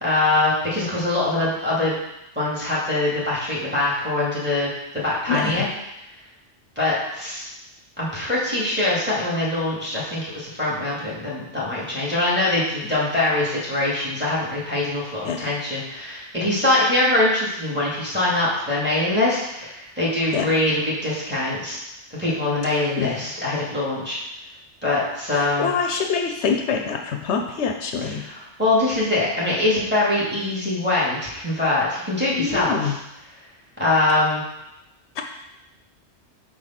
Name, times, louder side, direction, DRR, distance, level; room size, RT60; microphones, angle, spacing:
voice 1, 0.0-1.9 2.4-4.7 4.9-5.7 6.8-7.5 8.0-21.8 22.2-24.2 24.8-25.7 28.0-32.9 33.8-34.4, left 2 dB, 10° right, -7 dB, 2.0 m, -23 dB
voice 2, 5.3-5.6 15.2-15.5 20.3-20.5 23.0-23.3 25.3-28.2 32.4-33.0 35.2-35.3, left 6 dB, 75° left, 4 dB, 0.9 m, -25 dB
4.8 x 4.3 x 5.8 m, 0.88 s
omnidirectional pair, 1.2 m